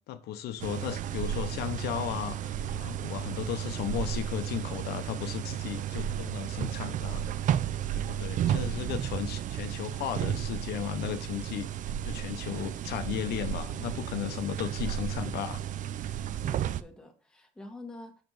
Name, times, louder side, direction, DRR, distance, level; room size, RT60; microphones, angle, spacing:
voice 1, 0.1-7.2 7.9-11.7 12.0-15.6, left 11 dB, 75° left, 0.7 m, -35 dB
sound 1, 0.6-16.8, right 10 dB, 50° right, 0.4 m, -33 dB
voice 2, 8.4-9.2 12.4-12.9 16.4-18.2, left 2 dB, 5° left, 1.3 m, -47 dB
6.5 x 4.7 x 3.9 m
cardioid pair, 110°, 17 cm